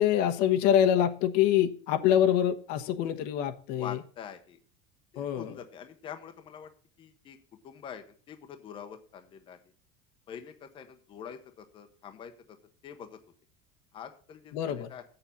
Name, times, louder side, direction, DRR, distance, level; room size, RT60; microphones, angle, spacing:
voice 1, 0.0-4.0 5.2-5.5 14.5-14.9, left 10 dB, 60° left, 1.1 m, -25 dB
voice 2, 3.7-4.6 5.1-6.7 7.0-7.4 7.6-9.6 10.3-12.6 12.8-13.2 13.9-15.0, left 8 dB, 30° left, 0.9 m, -45 dB
7.7 x 6.9 x 7.0 m
cardioid pair, 165°, 18 cm